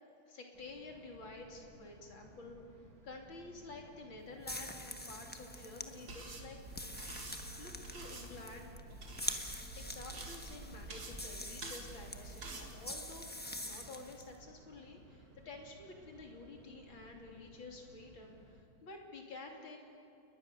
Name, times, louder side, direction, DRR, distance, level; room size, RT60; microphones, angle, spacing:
voice 1, 0.3-2.6 3.0-6.6 7.6-8.7 9.8-13.3 13.6-19.8, left 3 dB, 65° left, 1 dB, 3.7 m, -50 dB
sound 1, 0.5-18.6, right 2 dB, 45° right, 2.4 m, -60 dB
sound 2, 4.4-14.3, left 1 dB, 10° left, 0.6 m, -45 dB
sound 3, 6.1-12.7, right 3 dB, 60° right, 2.9 m, -49 dB
29.5 x 21.0 x 6.8 m, 2.7 s
omnidirectional pair, 2.4 m